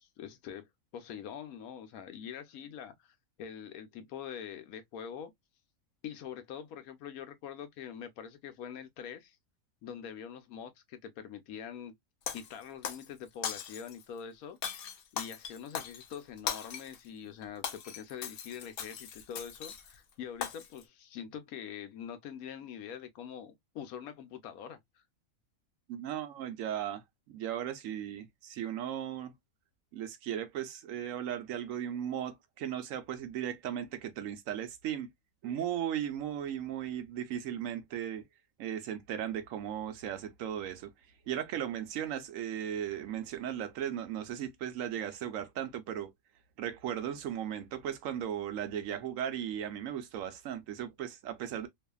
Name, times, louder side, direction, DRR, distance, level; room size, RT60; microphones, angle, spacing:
voice 1, 0.0-5.3 6.0-9.4 9.8-11.9 12.3-14.6 15.1-24.8, left 8 dB, 85° left, 1.1 m, -44 dB
Shatter, 12.3-13.1 13.4-14.0 14.6-17.0 17.4-20.0 20.4-20.8, left 8 dB, 65° left, 0.5 m, -39 dB
voice 2, 25.9-29.3 29.9-35.1 35.4-38.2 38.6-40.9 41.3-46.1 46.6-51.7, right 10 dB, 75° right, 0.9 m, -36 dB
2.6 x 2.4 x 2.2 m
omnidirectional pair, 1.5 m